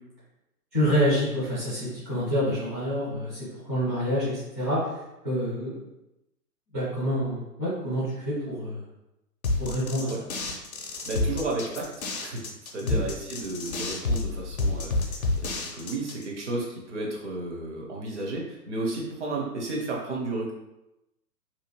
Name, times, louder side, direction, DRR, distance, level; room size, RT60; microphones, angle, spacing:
voice 1, 0.7-4.9 5.2-5.8 6.7-8.8 9.6-10.1 12.8-13.0, equal, 10° right, -14 dB, 0.5 m, -27 dB
sound 1, 9.4-16.2, left 2 dB, 60° left, 0.6 m, -29 dB
voice 2, 10.8-20.5, right 2 dB, 45° right, -2 dB, 0.8 m, -33 dB
2.8 x 2.3 x 2.9 m, 0.92 s
figure-of-eight pair, 120°, 49 cm